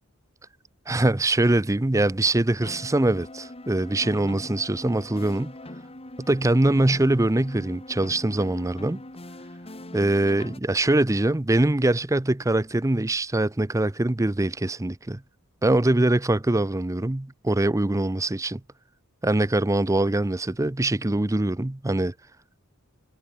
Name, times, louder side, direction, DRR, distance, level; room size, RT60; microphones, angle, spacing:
voice 1, 0.9-5.5 6.2-9.0 9.9-15.2 15.6-18.6 19.2-22.1, right 2 dB, 15° right, 0.6 m, -23 dB
sound 1, 2.6-10.6, left 1 dB, 25° left, 2.7 m, -41 dB
head